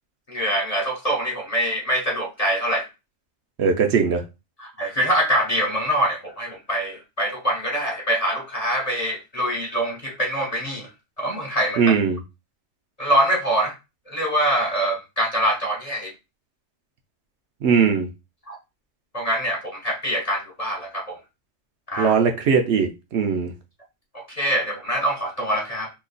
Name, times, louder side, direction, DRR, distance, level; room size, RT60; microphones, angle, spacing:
voice 1, 0.3-2.9 4.6-10.9 11.2-11.9 13.0-13.7 14.1-16.1 18.5-18.6 19.1-21.2 21.9-22.1 24.1-25.9, equal, 40° left, 0.6 m, -24 dB
voice 2, 3.6-4.2 11.8-12.2 17.6-18.1 22.0-23.5, right 6 dB, 65° right, 0.9 m, -20 dB
2.9 x 2.4 x 3.7 m
omnidirectional pair, 1.3 m